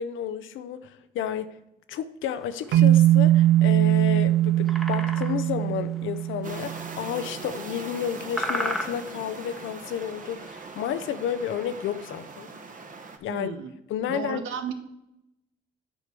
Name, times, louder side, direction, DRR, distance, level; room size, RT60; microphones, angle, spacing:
voice 1, 0.0-1.6 1.9-12.5 13.2-13.6 13.9-14.4, left 9 dB, 80° left, 12 dB, 0.7 m, -31 dB
sound 1, 2.2-11.1, equal, ahead, 1.0 m, -35 dB
sound 2, 2.7-7.0, right 14 dB, 65° right, 0.4 m, -21 dB
sound 3, 6.4-13.2, right 4 dB, 40° right, 1.2 m, -41 dB
voice 2, 13.3-13.7 14.1-14.7, right 8 dB, 85° right, 8 dB, 1.1 m, -33 dB
7.9 x 4.6 x 6.7 m, 0.85 s
cardioid pair, 90°, 20 cm